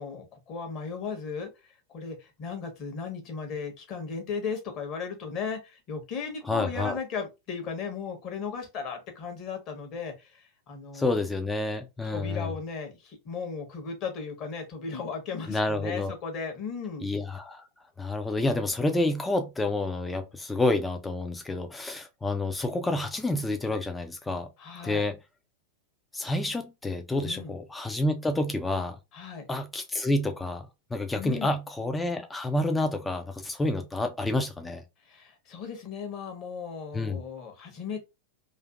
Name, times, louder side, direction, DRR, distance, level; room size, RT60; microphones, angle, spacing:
voice 1, 0.0-1.5 1.9-11.1 12.0-17.1 24.6-25.0 27.2-27.5 29.1-29.5 31.2-31.5 35.1-38.0, left 5 dB, 35° left, 0.9 m, -36 dB
voice 2, 6.4-7.0 10.9-12.5 15.5-16.2 17.0-17.6 18.0-24.5 24.8-25.2 26.1-29.0 29.5-34.8 36.9-37.2, left 2 dB, 10° left, 0.3 m, -29 dB
2.5 x 2.4 x 2.3 m
figure-of-eight pair, 90°, 0 cm